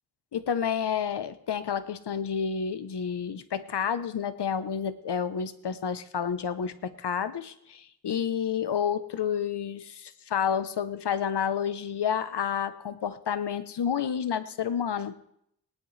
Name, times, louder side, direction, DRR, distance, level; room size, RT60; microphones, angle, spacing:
voice 1, 0.3-15.1, left 7 dB, 75° left, 12 dB, 0.9 m, -30 dB
19.5 x 10.5 x 3.3 m, 0.73 s
wide cardioid pair, 75°, 41 cm